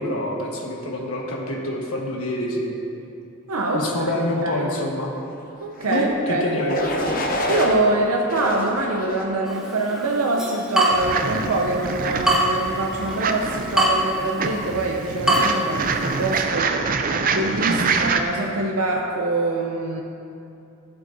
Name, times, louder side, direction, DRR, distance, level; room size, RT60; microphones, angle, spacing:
voice 1, 0.0-2.8 3.7-5.1 5.9-6.8 17.7-17.9, left 1 dB, 75° left, -1 dB, 1.3 m, -26 dB
voice 2, 3.5-4.1 4.4-4.6 5.6-6.6 7.5-16.7 17.3-20.0, right 2 dB, 85° right, 0 dB, 0.7 m, -24 dB
sound 1, 5.8-6.1 6.7-7.8 8.3-9.3 9.9-10.3, left 1 dB, 40° left, 0.9 m, -27 dB
Water tap faucet / Drip, 9.4-16.4, right 1 dB, 5° right, 1.1 m, -25 dB
sound 2, 10.9-18.2, right 5 dB, 40° right, 0.5 m, -26 dB
14.5 x 8.0 x 2.7 m, 2.7 s
head